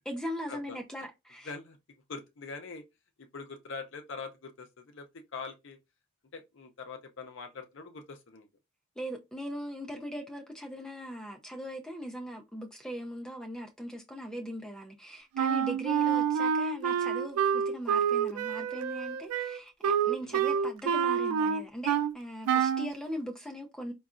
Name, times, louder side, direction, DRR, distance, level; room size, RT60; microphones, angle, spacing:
voice 1, 0.1-1.5 9.0-23.9, equal, 5° left, 0.4 m, -40 dB
voice 2, 1.4-1.8 2.1-2.8 3.2-5.8 6.3-8.5 9.9-10.0 20.2-20.4, left 4 dB, 55° left, 0.5 m, -43 dB
Wind instrument woodwind instrument, 15.4-22.1 22.5-22.9, right 7 dB, 85° right, 0.3 m, -28 dB
3.9 x 2.2 x 2.4 m
head